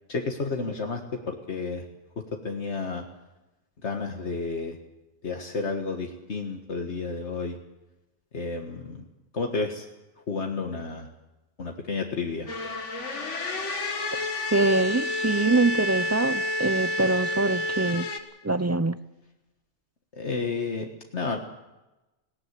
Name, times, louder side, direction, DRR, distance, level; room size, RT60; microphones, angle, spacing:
voice 1, 0.1-1.0 1.3-1.8 2.4-3.0 3.8-4.8 5.2-7.6 8.3-9.1 9.3-9.9 10.3-11.1 11.6-12.5 20.1-21.4, left 4 dB, 70° left, 2 dB, 1.8 m, -31 dB
sound 1, 12.5-18.2, left 1 dB, 85° left, 2.1 m, -29 dB
voice 2, 14.5-18.1 18.4-19.0, right 2 dB, 20° right, 13 dB, 0.4 m, -24 dB
19.5 x 17.5 x 8.3 m, 1.0 s
omnidirectional pair, 1.2 m